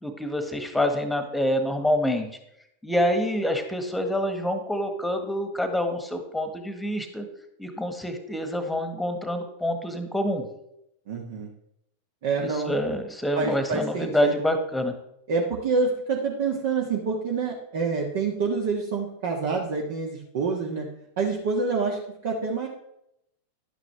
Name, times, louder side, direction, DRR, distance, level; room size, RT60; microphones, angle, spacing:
voice 1, 0.0-2.3 2.8-7.2 7.6-10.5 12.4-14.9, left 1 dB, 5° left, 7 dB, 1.5 m, -26 dB
voice 2, 11.1-11.5 12.2-12.8 13.3-14.4 15.3-20.8 21.2-22.7, right 4 dB, 50° right, 0 dB, 1.5 m, -27 dB
11.5 x 9.2 x 3.4 m, 0.79 s
figure-of-eight pair, 90°, 0 cm